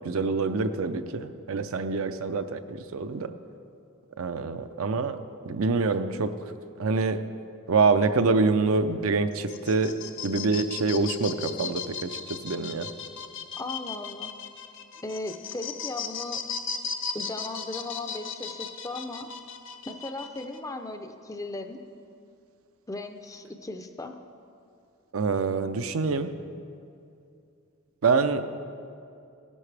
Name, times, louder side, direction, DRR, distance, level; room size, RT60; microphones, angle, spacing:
voice 1, 0.0-3.3 4.2-5.2 5.5-7.2 7.7-9.9 10.2-12.9 25.1-26.3 28.0-28.4, right 4 dB, 75° right, 10 dB, 0.5 m, -26 dB
sound 1, 9.3-20.6, left 6 dB, 60° left, 0.6 m, -37 dB
voice 2, 13.5-14.3 15.0-16.4 17.1-19.3 19.9-21.8 22.9-24.1, left 2 dB, 15° left, 6 dB, 0.4 m, -37 dB
16.5 x 10.5 x 3.3 m, 2.5 s
head